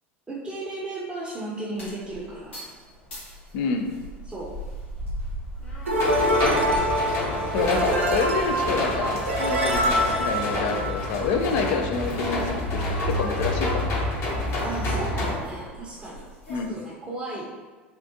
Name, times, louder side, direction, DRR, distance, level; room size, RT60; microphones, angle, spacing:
voice 1, 0.3-2.7 4.2-4.5 7.7-8.2 14.6-16.2 16.5-17.6, right 2 dB, 15° right, -6 dB, 0.6 m, -35 dB
sound 1, 1.8-16.7, equal, 80° left, 1.3 m, -40 dB
voice 2, 3.5-4.0 7.5-13.9 16.5-16.8, left 4 dB, 60° left, 5 dB, 0.4 m, -28 dB
sound 2, 5.9-11.4, equal, 85° right, 0.5 m, -25 dB
sound 3, 6.0-15.3, left 1 dB, 40° left, 0.8 m, -28 dB
3.5 x 2.4 x 2.6 m, 1.4 s
figure-of-eight pair, 75°, 7 cm